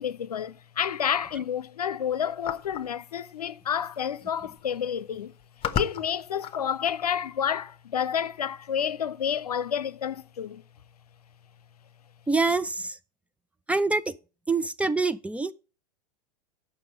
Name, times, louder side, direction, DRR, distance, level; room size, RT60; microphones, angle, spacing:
voice 1, 0.0-5.3 5.7-10.6, left 8 dB, 75° left, 0.7 m, -29 dB
sound 1, 2.4-2.9 4.0-4.1 4.3-4.7 5.3-7.1, left 8 dB, 30° left, 1.1 m, -33 dB
voice 2, 12.3-13.0 13.7-14.1 14.5-15.5, right 3 dB, 5° right, 0.5 m, -25 dB
8.5 x 6.1 x 8.0 m
figure-of-eight pair, 90°, 20 cm